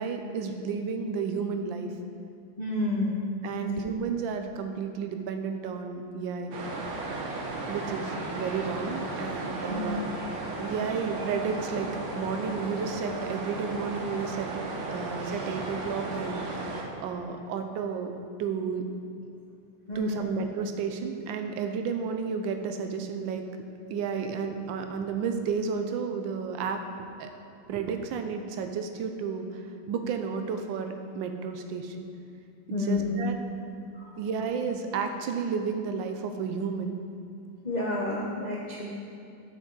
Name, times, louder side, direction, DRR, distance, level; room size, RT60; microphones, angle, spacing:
voice 1, 0.0-1.9 3.4-6.5 7.7-10.1 10.6-14.6 14.9-18.8 19.9-23.4 23.9-26.8 27.2-27.3 27.7-32.1 32.7-33.4 34.2-36.9, right 6 dB, 80° right, 6 dB, 1.3 m, -32 dB
voice 2, 2.6-3.2 3.5-3.7 9.7-10.0 19.9-20.3 32.7-33.2 33.9-34.2 37.6-38.9, left 2 dB, 70° left, -5 dB, 0.4 m, -30 dB
sound 1, 6.5-16.8, right 2 dB, 50° right, 0.9 m, -35 dB
8.0 x 6.2 x 3.9 m, 2.6 s
omnidirectional pair, 2.1 m